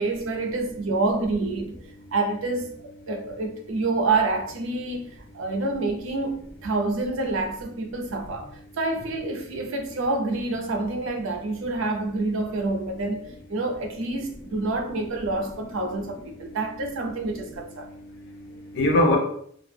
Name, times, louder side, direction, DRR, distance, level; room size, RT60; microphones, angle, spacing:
voice 1, 0.0-1.8 2.1-2.7 3.1-8.5 8.8-13.2 13.5-17.9, right 3 dB, 85° right, 3 dB, 0.5 m, -27 dB
voice 2, 16.5-17.0 17.4-19.2, left 1 dB, 65° left, 2 dB, 0.6 m, -26 dB
2.4 x 2.1 x 3.2 m, 0.64 s
head